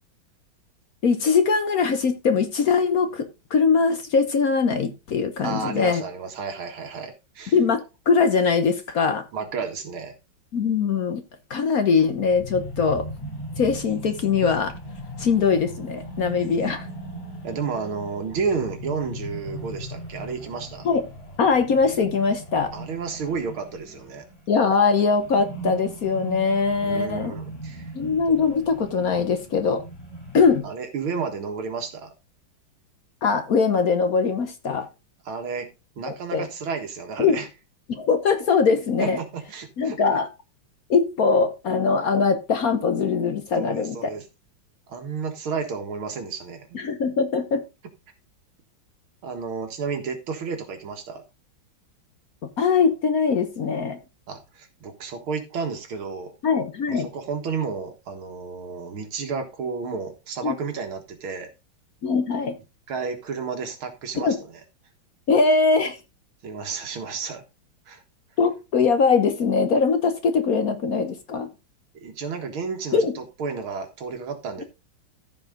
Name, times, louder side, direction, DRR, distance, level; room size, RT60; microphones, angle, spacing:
voice 1, 1.0-6.0 7.5-9.2 10.5-11.2 11.5-13.1 13.6-14.7 15.2-16.9 20.8-21.0 21.4-22.7 24.5-27.3 27.9-29.8 30.3-30.7 33.2-34.9 36.1-36.5 37.2-37.4 37.9-39.2 39.8-40.3 40.9-44.1 46.7-47.6 52.6-54.0 56.4-57.1 60.4-60.5 62.0-62.6 64.2-64.4 65.3-66.0 68.4-71.5 72.9-73.1, left 5 dB, 55° left, 1.2 m, -21 dB
voice 2, 5.4-7.5 9.3-10.1 17.4-20.9 22.7-24.2 26.8-27.9 30.6-32.1 35.3-35.7 36.0-37.5 39.0-40.0 43.5-44.2 44.9-46.8 49.2-51.2 54.3-56.3 56.9-61.5 62.9-64.4 66.4-67.4 67.9-68.0 71.9-74.6, right 5 dB, 80° right, 2.5 m, -31 dB
sound 1, 12.2-24.6 24.8-30.6, right 1 dB, 25° left, 4.5 m, -38 dB
14.0 x 4.8 x 3.8 m
omnidirectional pair, 2.2 m